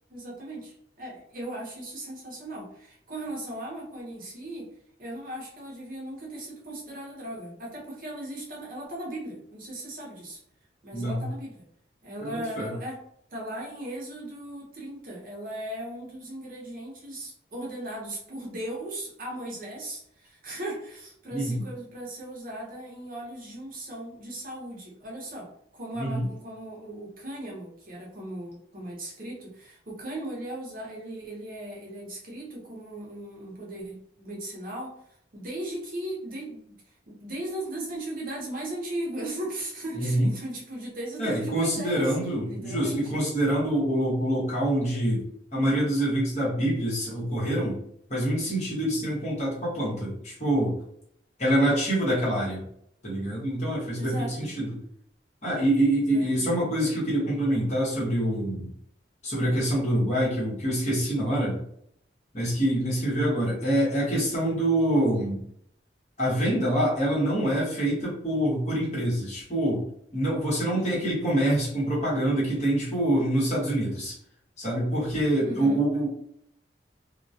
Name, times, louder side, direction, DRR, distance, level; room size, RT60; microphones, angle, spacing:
voice 1, 0.1-4.7 5.0-10.4 10.8-11.6 12.0-13.0 13.3-34.9 35.3-36.8 37.1-42.2 42.5-43.2 54.0-54.5 56.0-56.5 75.4-75.8, right 1 dB, 50° right, -3 dB, 0.7 m, -37 dB
voice 2, 10.9-11.2 12.2-12.7 21.3-21.6 25.9-26.3 40.0-40.3 41.2-45.2 45.5-47.8 48.1-50.8 51.4-52.6 53.0-54.7 55.4-58.7 59.2-61.6 62.3-65.4 66.2-69.8 70.1-74.1 74.6-76.1, right 1 dB, 40° left, -6 dB, 1.0 m, -25 dB
2.2 x 2.2 x 2.6 m, 0.70 s
head